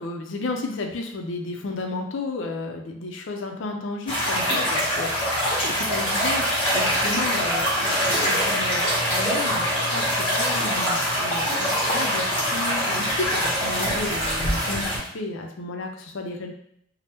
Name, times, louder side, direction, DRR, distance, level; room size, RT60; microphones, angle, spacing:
voice 1, 0.0-16.5, left 2 dB, 75° left, 3 dB, 0.5 m, -33 dB
sound 1, 4.1-15.0, equal, 25° left, 0.9 m, -24 dB
3.3 x 2.0 x 2.8 m, 0.71 s
head